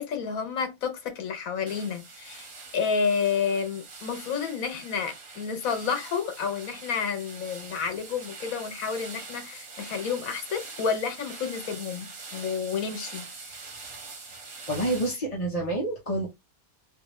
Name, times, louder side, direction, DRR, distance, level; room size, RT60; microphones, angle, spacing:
voice 1, 0.0-13.6, left 6 dB, 75° left, 1.3 m, -30 dB
sound 1, 1.7-15.2, right 4 dB, 65° right, 1.6 m, -44 dB
voice 2, 14.7-16.3, right 1 dB, 30° left, 0.9 m, -28 dB
3.4 x 3.0 x 3.1 m
omnidirectional pair, 1.5 m